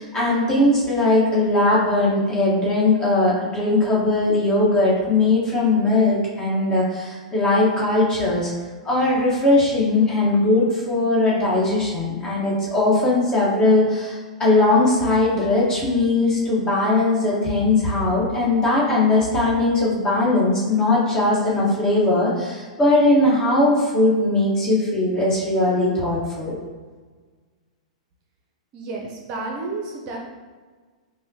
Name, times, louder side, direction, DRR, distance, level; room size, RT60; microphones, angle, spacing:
voice 1, 0.0-8.5 8.8-26.6, left 2 dB, 20° left, -6 dB, 1.4 m, -19 dB
voice 2, 28.7-30.2, right 3 dB, 40° right, 0 dB, 0.6 m, -31 dB
5.4 x 2.2 x 2.8 m, 1.5 s
figure-of-eight pair, 105°, 3 cm